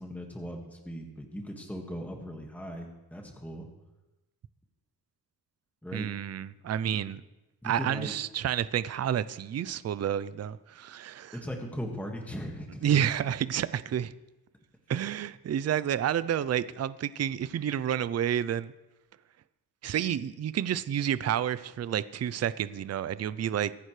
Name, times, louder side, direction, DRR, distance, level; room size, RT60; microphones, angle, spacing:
voice 1, 0.0-3.7 5.8-6.1 6.8-7.0 7.6-8.1 11.3-12.9, equal, 5° left, 1.8 m, -38 dB
voice 2, 5.9-7.2 7.6-11.4 12.8-14.1 14.9-18.7 19.8-23.7, right 9 dB, 45° right, 0.5 m, -30 dB
24.5 x 11.0 x 3.3 m
wide cardioid pair, 145°, 37 cm